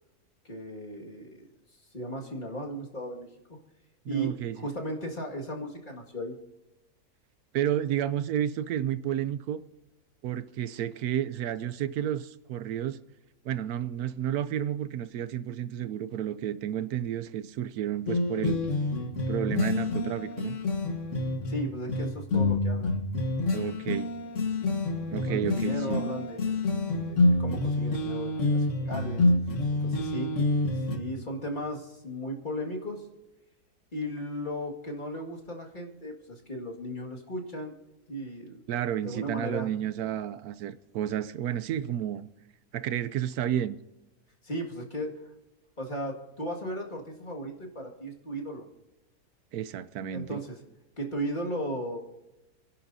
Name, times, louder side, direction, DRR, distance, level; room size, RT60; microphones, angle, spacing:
voice 1, 0.4-1.5 1.9-3.3 4.1-6.4 21.5-22.9 25.3-26.8 27.1-29.3 29.8-30.3 30.7-33.1 33.9-37.7 38.1-38.6 39.0-39.7 44.4-45.2 45.8-48.7 50.1-50.6 51.0-52.0, equal, 30° left, 2.1 m, -36 dB
voice 2, 4.1-4.6 7.5-9.6 10.2-13.0 13.4-18.6 19.3-20.6 23.5-24.1 25.1-26.0 38.7-42.3 42.7-43.8 49.5-50.4, right 10 dB, 80° right, 1.1 m, -31 dB
sound 1, 18.1-31.0, left 2 dB, 55° left, 1.6 m, -27 dB
29.0 x 11.0 x 2.7 m
omnidirectional pair, 1.6 m